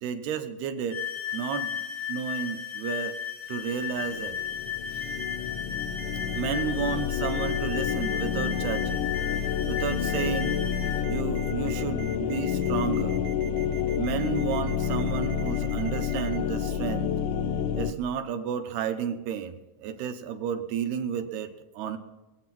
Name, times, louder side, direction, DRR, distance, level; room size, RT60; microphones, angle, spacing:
voice 1, 0.0-1.0 1.3-3.1 3.5-4.4 4.9-5.0 6.3-9.1 9.7-10.6 11.0-13.2 14.0-17.1 17.7-22.0, right 8 dB, 85° right, 7 dB, 3.0 m, -32 dB
sound 1, 0.9-11.1, left 9 dB, 65° left, 1.4 m, -34 dB
sound 2, 4.1-17.9, left 8 dB, 85° left, 1.7 m, -29 dB
Ringtone, 5.0-5.4 6.0-6.6 7.2-7.6 7.9-8.2 8.5-8.8 9.1-9.5 9.8-16.4, right 11 dB, 70° right, 1.6 m, -44 dB
21.5 x 8.3 x 6.0 m, 1.1 s
omnidirectional pair, 4.4 m